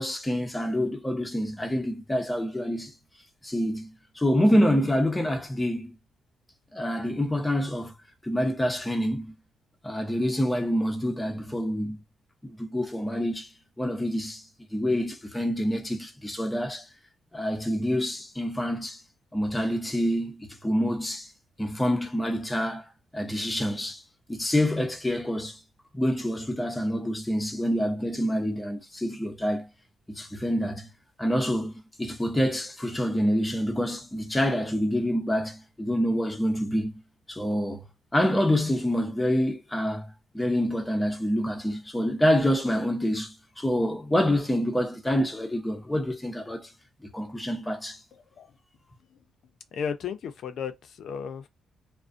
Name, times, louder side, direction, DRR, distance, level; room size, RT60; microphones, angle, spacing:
voice 1, 0.0-2.9 3.4-6.0 6.7-7.9 8.2-9.3 9.8-12.0 12.4-13.5 13.8-14.4 14.7-16.9 17.3-19.0 19.3-21.3 21.6-24.0 24.3-25.6 25.9-29.7 30.1-30.9 31.2-36.9 37.3-37.8 38.1-46.7 47.1-48.0, equal, 10° left, 0.6 m, -27 dB
voice 2, 49.7-51.5, left 7 dB, 65° left, 0.4 m, -34 dB
2.4 x 2.1 x 2.4 m
cardioid pair, 90°, 0 cm